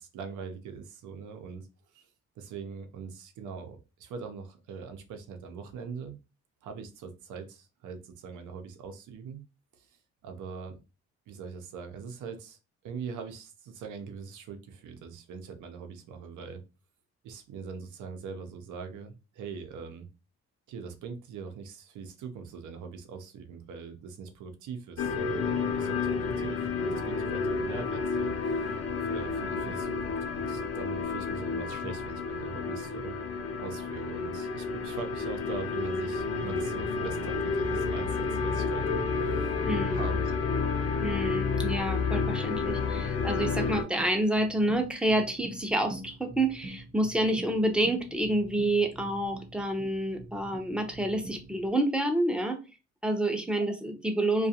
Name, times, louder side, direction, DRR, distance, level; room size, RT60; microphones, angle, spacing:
voice 1, 0.0-1.7 1.9-2.1 2.4-6.1 6.6-9.4 9.7-10.0 10.2-10.8 11.3-12.6 12.8-16.6 17.2-20.1 20.7-33.2 33.6-39.6 39.9-40.2, right 5 dB, 80° right, 6 dB, 0.6 m, -42 dB
sound 1, 25.0-43.8, left 4 dB, 55° left, 0.6 m, -30 dB
voice 2, 39.6-40.1 41.0-52.6 53.0-54.5, right 1 dB, 5° right, 5 dB, 0.5 m, -28 dB
Stairs Drum Loop, 44.0-51.7, right 1 dB, 40° right, 0.9 m, -45 dB
2.4 x 2.3 x 2.7 m, 0.29 s
cardioid pair, 90°, 30 cm